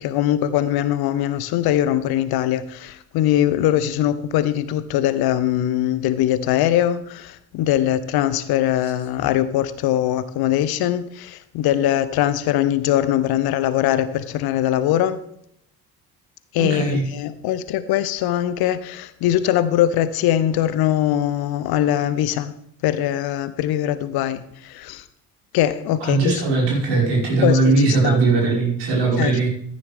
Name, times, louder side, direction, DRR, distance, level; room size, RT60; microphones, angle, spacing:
voice 1, 0.0-15.2 16.5-22.5 22.8-25.0 25.5-26.4 27.4-28.2 29.2-29.5, left 12 dB, 50° left, 0.8 m, -21 dB
voice 2, 16.7-17.0 26.0-29.5, right 3 dB, 55° right, 5.3 m, -19 dB
14.0 x 9.8 x 3.6 m
figure-of-eight pair, 55°, 49 cm